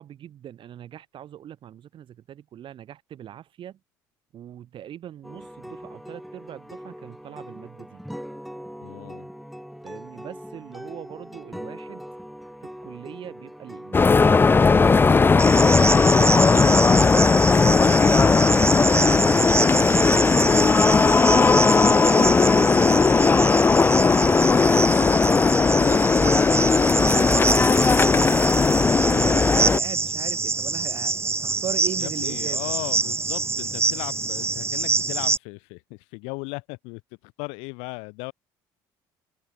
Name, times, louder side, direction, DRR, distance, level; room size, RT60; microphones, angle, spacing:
voice 1, 0.0-3.8 4.3-8.0 9.8-12.1 12.6-16.2 21.8-25.1 25.6-26.4 26.9-28.3 28.9-32.7, right 10 dB, 55° right, 7.1 m, -40 dB
sound 1, 5.2-24.1, equal, ahead, 7.1 m, -40 dB
voice 2, 8.8-9.3 32.0-38.3, left 30 dB, 70° left, 4.0 m, -37 dB
sound 2, 13.9-29.8, left 4 dB, 20° left, 0.5 m, -17 dB
Cricket, 15.4-35.4, right 4 dB, 25° right, 3.2 m, -26 dB
hypercardioid pair, 60°, 11 cm